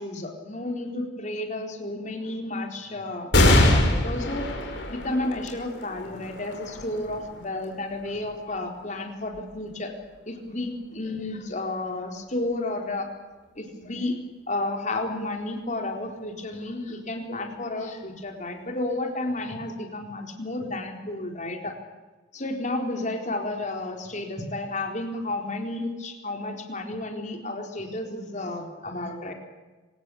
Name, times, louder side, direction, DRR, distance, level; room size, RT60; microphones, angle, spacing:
voice 1, 0.0-4.5 4.9-9.9 10.3-13.1 13.6-14.2 14.5-21.7 22.3-29.3, left 2 dB, 40° left, 3 dB, 4.1 m, -32 dB
sound 1, 3.3-10.2 10.8-10.9 12.0-12.6, left 1 dB, 65° left, 5.4 m, -25 dB
26.5 x 17.5 x 8.5 m, 1.3 s
head